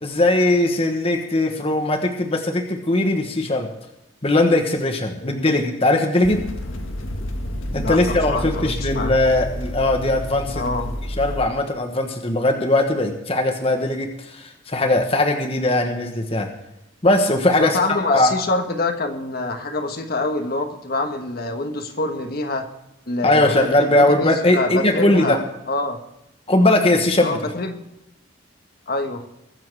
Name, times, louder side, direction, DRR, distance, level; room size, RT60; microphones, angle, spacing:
voice 1, 0.0-3.7 4.2-6.4 7.7-10.7 11.2-16.5 17.0-17.8 18.1-18.3 23.2-25.4 26.5-27.4, left 1 dB, 30° left, 4 dB, 1.3 m, -19 dB
voice 2, 5.2-5.6 7.7-8.0 8.3-9.1 10.5-10.9 15.6-15.8 17.6-22.7 23.1-25.4 25.7-26.0 27.2-27.8 28.9-29.2, left 2 dB, 50° left, 5 dB, 1.4 m, -26 dB
sound 1, 6.2-11.5, equal, 85° left, 1.7 m, -29 dB
22.5 x 7.5 x 4.8 m, 0.87 s
head